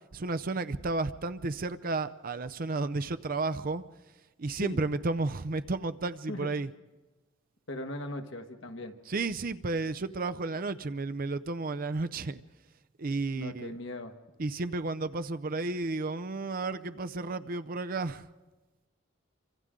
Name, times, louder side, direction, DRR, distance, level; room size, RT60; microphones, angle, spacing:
voice 1, 0.1-3.8 4.4-6.7 9.1-12.4 13.0-13.7 14.4-18.3, right 3 dB, 45° right, 11 dB, 0.6 m, -32 dB
voice 2, 7.7-9.0 13.3-14.1, left 2 dB, 65° left, 6 dB, 1.5 m, -39 dB
28.0 x 25.0 x 3.8 m, 1.2 s
head